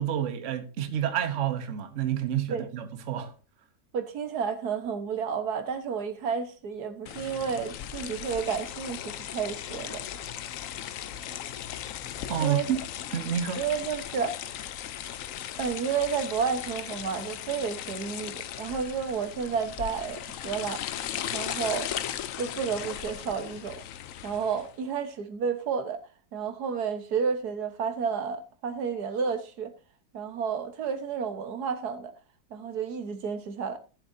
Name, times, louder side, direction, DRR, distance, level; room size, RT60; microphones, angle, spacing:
voice 1, 0.0-3.3 12.3-12.8 13.1-13.6, right 9 dB, 55° right, 1.2 m, -29 dB
voice 2, 3.9-10.0 12.4-12.7 13.6-14.4 15.6-20.8 21.3-21.9 22.4-23.8 24.2-26.0 26.3-29.7 30.1-32.1 32.5-33.8, right 6 dB, 75° right, 1.7 m, -31 dB
sound 1, 7.1-24.7, left 10 dB, 65° left, 0.9 m, -37 dB
17.5 x 7.3 x 2.7 m
omnidirectional pair, 1.7 m